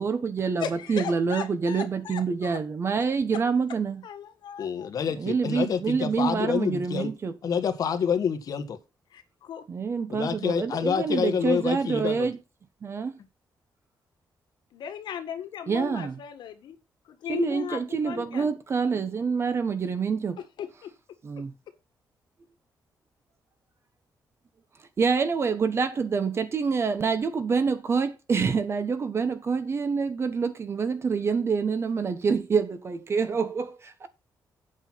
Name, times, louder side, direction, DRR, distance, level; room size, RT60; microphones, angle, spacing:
voice 1, 0.0-4.0 5.1-7.3 9.7-12.4 12.8-13.1 15.7-16.1 17.3-20.4 21.2-21.5 25.0-34.1, right 5 dB, 35° right, 1.2 m, -26 dB
voice 2, 0.6-2.6 3.3-3.4 4.0-4.9 9.1-9.7 14.7-16.8 17.0-18.5 20.6-20.9 21.3-21.5, left 9 dB, 90° left, 1.8 m, -37 dB
voice 3, 4.6-7.1 7.4-8.8 10.1-12.3, left 7 dB, 55° left, 1.6 m, -27 dB
8.6 x 6.1 x 5.8 m
wide cardioid pair, 160°, 8 cm